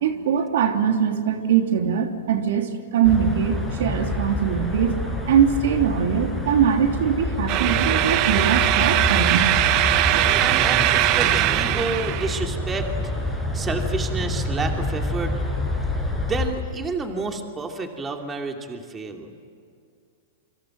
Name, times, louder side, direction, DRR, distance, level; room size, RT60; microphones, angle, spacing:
voice 1, 0.0-5.0 5.2-9.5 9.9-10.3, right 8 dB, 70° right, 4 dB, 3.1 m, -22 dB
sound 1, 3.0-16.5, left 2 dB, 5° left, 5.2 m, -28 dB
sound 2, 7.5-12.4, right 14 dB, 40° right, 1.1 m, -21 dB
voice 2, 10.2-12.9 13.2-15.3 16.2-19.3, right 3 dB, 15° right, 3 dB, 2.7 m, -30 dB
28.0 x 25.0 x 7.8 m, 2.3 s
hypercardioid pair, 140°, 0 cm